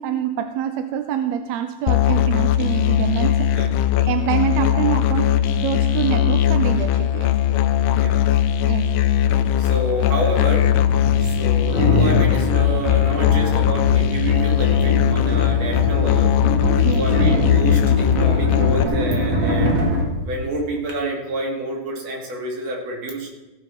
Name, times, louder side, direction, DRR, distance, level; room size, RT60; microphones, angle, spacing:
voice 1, 0.0-3.5 4.1-7.3 8.7-8.9 16.8-17.1, right 10 dB, 80° right, 8 dB, 1.8 m, -25 dB
Musical instrument, 1.9-18.8, left 11 dB, 85° left, 2.2 m, -19 dB
sound 1, 9.3-9.4 10.3-20.9, right 1 dB, 30° right, 1.9 m, -24 dB
voice 2, 9.6-10.7 11.2-16.4 16.8-19.9 20.2-23.3, right 1 dB, 55° right, -1 dB, 3.8 m, -28 dB
sound 2, 11.3-15.2 15.6-20.2, left 17 dB, 65° left, 1.9 m, -29 dB
16.0 x 6.9 x 6.0 m, 1.1 s
omnidirectional pair, 3.4 m